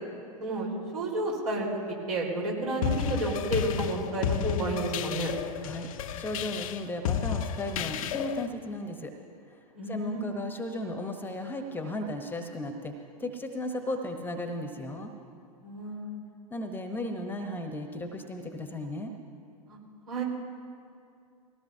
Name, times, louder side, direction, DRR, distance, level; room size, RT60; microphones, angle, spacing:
voice 1, 0.4-1.7 2.1-5.3 9.7-10.2 15.6-16.2 19.7-19.8 20.1-20.2, right 2 dB, 70° right, -3 dB, 4.2 m, -31 dB
sound 1, 2.8-8.5, left 8 dB, 60° left, 0.6 m, -32 dB
voice 2, 6.2-9.1 9.5-12.9 13.2-15.1 16.5-19.1, left 1 dB, 10° left, 5 dB, 1.0 m, -35 dB
20.0 x 17.0 x 2.8 m, 2.4 s
figure-of-eight pair, 100°, 20 cm